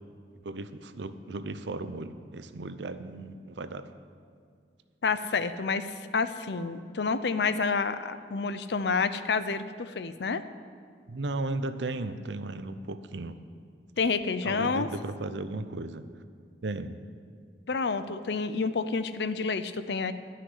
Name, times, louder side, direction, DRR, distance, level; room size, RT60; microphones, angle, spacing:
voice 1, 0.4-3.9 11.1-13.4 14.4-16.0 16.6-17.0, right 2 dB, 85° right, 11 dB, 0.7 m, -35 dB
voice 2, 5.0-10.4 14.0-14.9 17.7-20.1, left 4 dB, 70° left, 12 dB, 0.6 m, -29 dB
13.0 x 5.9 x 9.6 m, 2.1 s
head